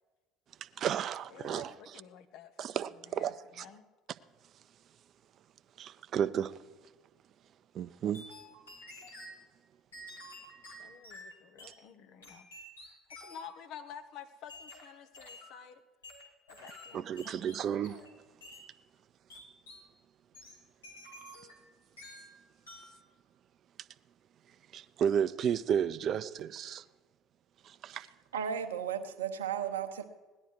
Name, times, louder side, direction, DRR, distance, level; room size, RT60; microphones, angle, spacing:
voice 1, 0.8-1.7 2.6-3.6 5.8-6.6 7.7-8.2 16.9-18.0 24.7-26.8 27.6-28.1, right 8 dB, 50° right, 0.6 m, -32 dB
voice 2, 1.3-3.8 10.8-12.5 12.8-15.8 16.5-17.4, left 8 dB, 60° left, 1.1 m, -51 dB
sound 1, 8.1-9.4 9.9-11.8 12.2-13.6 14.5-15.6 16.0-18.1 18.4-18.7 19.3-19.9 20.3-21.7 22.0-22.3 22.7-23.0, left 1 dB, 85° left, 2.5 m, -50 dB
voice 3, 28.3-30.0, right 8 dB, 80° right, 0.9 m, -34 dB
18.0 x 11.0 x 4.7 m
hypercardioid pair, 60°, 0 cm